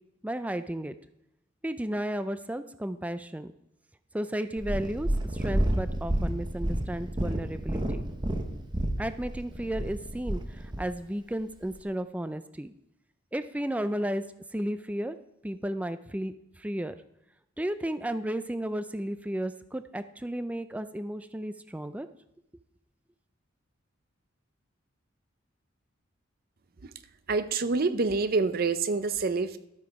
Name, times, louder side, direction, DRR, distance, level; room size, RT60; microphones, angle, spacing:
voice 1, 0.2-1.0 1.6-3.5 4.1-8.0 9.0-12.7 13.3-14.3 14.5-15.2 15.4-17.0 17.6-22.1, right 1 dB, 5° right, 12 dB, 0.4 m, -33 dB
Purr, 4.6-10.9 11.6-11.7, right 1 dB, 25° right, 1.0 m, -30 dB
voice 2, 27.3-29.6, right 4 dB, 50° right, 12 dB, 0.6 m, -27 dB
12.0 x 8.6 x 4.7 m, 0.83 s
head